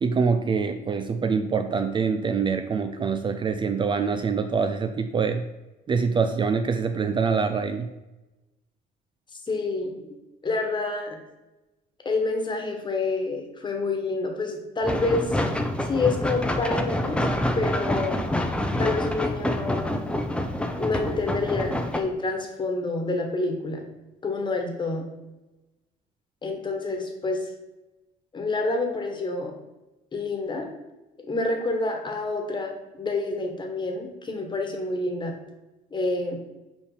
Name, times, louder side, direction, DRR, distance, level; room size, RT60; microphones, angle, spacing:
voice 1, 0.0-5.4 5.9-7.9, right 5 dB, 30° right, 8 dB, 0.4 m, -25 dB
voice 2, 9.3-10.1 10.4-11.2 12.0-15.4 15.8-17.3 17.5-18.2 18.8-19.9 20.8-23.8 24.2-25.0 26.4-27.5 28.3-29.5 30.1-30.7 31.3-35.3 35.9-36.4, left 3 dB, 25° left, 3 dB, 1.4 m, -28 dB
sound 1, 14.8-22.0, left 1 dB, 5° left, 0.7 m, -27 dB
5.2 x 5.1 x 4.9 m, 1.1 s
cardioid pair, 110°, 17 cm